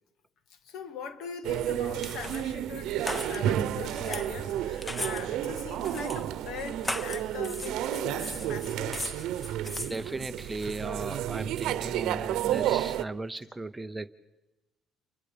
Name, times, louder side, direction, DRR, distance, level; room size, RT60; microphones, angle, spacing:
voice 1, 0.5-9.0, left 5 dB, 70° left, 2.1 m, -41 dB
sound 1, 1.4-13.0, right 12 dB, 75° right, 0.9 m, -31 dB
sound 2, 1.6-10.8, left 1 dB, 15° left, 1.1 m, -40 dB
sound 3, 5.5-11.0 11.3-11.4, right 6 dB, 45° left, 7.9 m, -63 dB
voice 2, 9.9-14.1, right 2 dB, 10° right, 0.7 m, -37 dB
29.5 x 24.5 x 5.2 m
cardioid pair, 130°, 0 cm